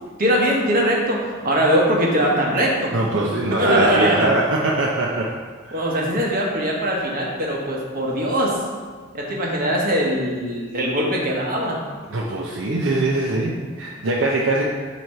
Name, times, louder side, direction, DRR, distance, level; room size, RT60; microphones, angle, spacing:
voice 1, 0.2-2.9 3.5-4.3 5.7-8.6 9.1-11.8, equal, 45° right, -2 dB, 1.3 m, -21 dB
voice 2, 2.9-5.3 5.6-6.1 12.1-14.6, right 2 dB, 65° right, -3 dB, 0.7 m, -22 dB
7.8 x 3.1 x 5.5 m, 1.5 s
head